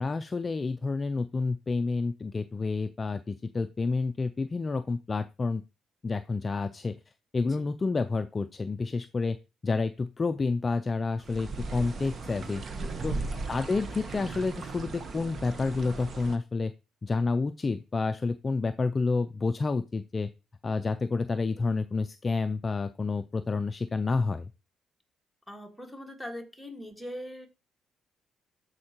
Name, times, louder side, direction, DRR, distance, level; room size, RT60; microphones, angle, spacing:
voice 1, 0.0-5.6 6.0-7.0 7.3-9.4 9.6-12.6 13.0-13.2 13.5-16.7 17.0-20.3 20.6-24.5, left 3 dB, 30° left, 10 dB, 0.3 m, -29 dB
sound 1, 11.2-16.4, right 3 dB, 45° right, 1.0 m, -37 dB
voice 2, 13.0-13.3 25.5-27.5, equal, 5° left, 2 dB, 1.6 m, -42 dB
13.0 x 4.4 x 2.9 m, 0.29 s
cardioid pair, 90°, 0 cm